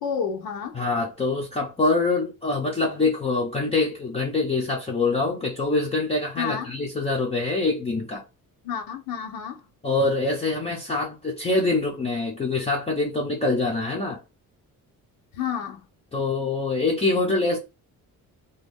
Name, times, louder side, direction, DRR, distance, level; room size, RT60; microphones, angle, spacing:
voice 1, 0.0-0.8 6.4-6.7 8.6-9.6 15.3-15.8, left 7 dB, 85° left, 0.7 m, -30 dB
voice 2, 0.7-8.2 9.8-14.2 16.1-17.6, left 3 dB, 20° left, 0.5 m, -25 dB
2.6 x 2.3 x 3.4 m
cardioid pair, 175°, 35 cm